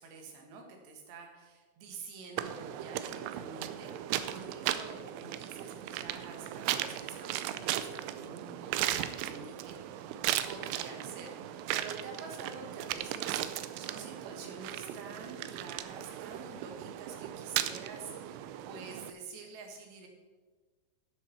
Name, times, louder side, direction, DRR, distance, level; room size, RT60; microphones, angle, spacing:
voice 1, 0.0-20.1, right 4 dB, 70° right, 3 dB, 3.6 m, -48 dB
sound 1, 2.4-19.1, right 12 dB, 85° right, 3.0 m, -37 dB
9.0 x 8.3 x 6.8 m, 1.3 s
omnidirectional pair, 5.5 m